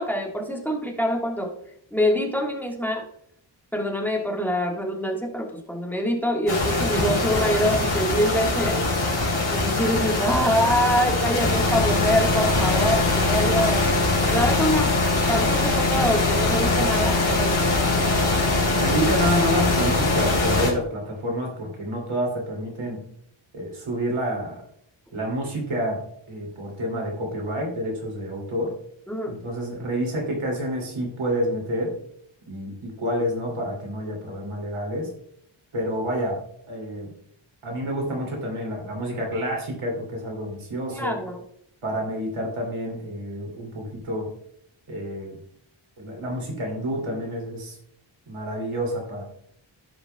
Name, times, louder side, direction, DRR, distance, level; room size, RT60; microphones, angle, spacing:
voice 1, 0.0-1.5 1.9-3.0 3.7-8.9 9.5-13.8 14.3-14.9 15.3-17.7 29.1-29.3 40.9-41.4, equal, 5° left, 0 dB, 1.5 m, -25 dB
sound 1, 6.5-20.7, left 2 dB, 80° left, 3.3 m, -22 dB
voice 2, 18.7-23.0 23.5-24.6 25.1-26.0 26.3-28.7 29.3-31.9 32.5-35.1 35.7-36.4 36.7-37.1 37.6-41.2 41.8-44.3 44.9-45.4 46.0-47.8 48.3-49.2, equal, 90° right, 0 dB, 2.7 m, -28 dB
16.0 x 5.5 x 2.2 m, 0.69 s
wide cardioid pair, 100°, 48 cm